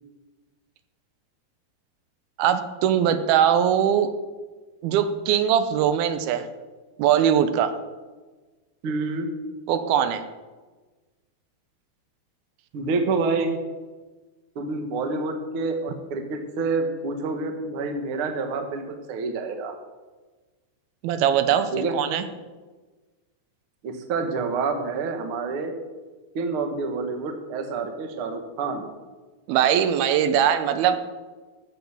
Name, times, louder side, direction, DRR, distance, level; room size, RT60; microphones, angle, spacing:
voice 1, 2.4-4.1 4.8-6.5 7.0-7.8 9.7-10.2 21.0-22.3 29.5-31.0, right 9 dB, 85° right, 10 dB, 2.7 m, -21 dB
voice 2, 8.8-9.3 12.7-13.6 14.5-19.7 21.7-21.9 23.8-25.7 26.3-28.9, right 4 dB, 55° right, 5 dB, 1.5 m, -28 dB
13.5 x 8.1 x 7.1 m, 1.3 s
omnidirectional pair, 4.4 m